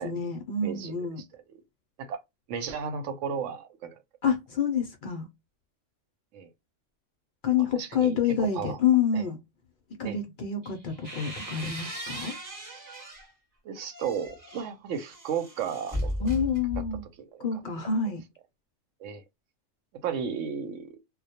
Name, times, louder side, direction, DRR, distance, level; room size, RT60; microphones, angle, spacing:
voice 1, 0.0-1.2 4.2-5.3 7.4-9.4 10.0-12.3 16.2-17.0 17.4-18.2, left 6 dB, 60° left, 0.5 m, -27 dB
voice 2, 0.6-1.0 1.3-1.6 2.0-2.2 2.5-4.0 6.3-6.5 7.7-8.8 9.1-9.2 10.0-10.2 13.6-16.3 17.2-17.6 19.0-19.2 20.0-21.0, right 7 dB, 85° right, 1.0 m, -34 dB
sound 1, 10.6-13.3 13.8-17.1, equal, 15° right, 0.9 m, -37 dB
2.2 x 2.0 x 2.7 m
omnidirectional pair, 1.3 m